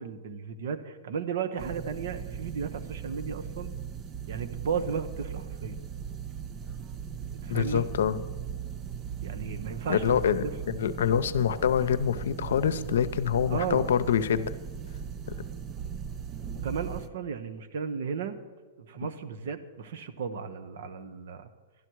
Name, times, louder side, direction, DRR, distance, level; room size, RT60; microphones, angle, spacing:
voice 1, 0.0-3.7 4.3-5.8 7.4-7.8 9.2-10.5 13.5-13.9 16.6-18.4 18.8-21.5, right 6 dB, 70° right, 9 dB, 1.1 m, -34 dB
sound 1, 1.6-17.1, right 8 dB, 30° right, 0.5 m, -38 dB
voice 2, 7.5-8.2 9.9-14.5, left 8 dB, 75° left, 12 dB, 0.7 m, -26 dB
11.5 x 11.5 x 4.7 m, 1.4 s
hypercardioid pair, 125°, 0 cm